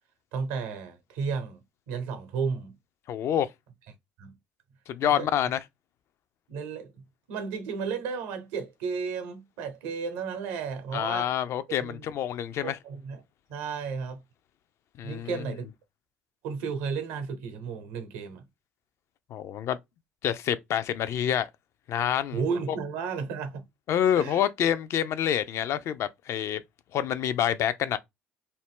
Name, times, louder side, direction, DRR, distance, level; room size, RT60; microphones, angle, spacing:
voice 1, 0.3-1.6 1.9-2.7 4.2-4.3 5.0-5.3 6.5-11.3 11.8-12.1 12.6-13.2 13.5-14.2 15.0-15.6 16.4-18.4 22.3-23.6 24.2-24.4, right 5 dB, 75° right, 0.8 m, -33 dB
voice 2, 3.1-3.5 4.9-5.6 10.9-12.8 15.0-15.3 19.3-19.8 20.2-21.5 21.9-22.4 23.9-26.6 26.9-28.0, left 10 dB, 60° left, 0.4 m, -27 dB
2.6 x 2.0 x 3.5 m
hypercardioid pair, 60°, 5 cm